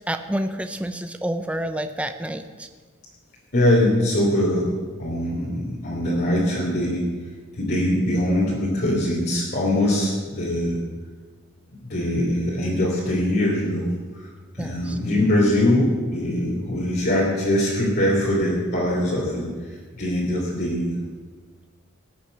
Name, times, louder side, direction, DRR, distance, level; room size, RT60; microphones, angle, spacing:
voice 1, 0.1-2.7 14.6-15.0, right 1 dB, 5° right, 7 dB, 0.6 m, -29 dB
voice 2, 3.5-7.1 7.5-10.8 11.7-13.9 14.2-19.5 19.9-21.0, left 1 dB, 50° left, -5 dB, 3.0 m, -22 dB
18.5 x 6.6 x 7.8 m, 1.4 s
head